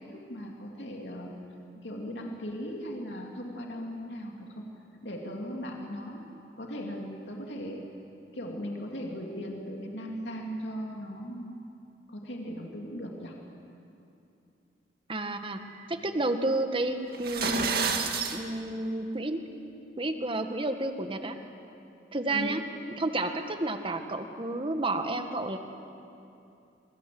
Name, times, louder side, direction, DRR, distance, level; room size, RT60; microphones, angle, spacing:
voice 1, 0.0-1.3 1.8-4.6 5.0-6.2 6.6-7.8 8.3-11.6 12.1-13.4 22.3-22.5, equal, 80° left, 0 dB, 2.8 m, -38 dB
voice 2, 15.1-15.6 15.9-17.9 18.3-19.4 20.0-21.4 22.1-22.6 23.0-25.6, right 2 dB, 30° right, 6 dB, 1.6 m, -31 dB
sound 1, 17.1-18.4, right 5 dB, 60° right, 2.1 m, -29 dB
26.0 x 23.5 x 7.8 m, 2.7 s
head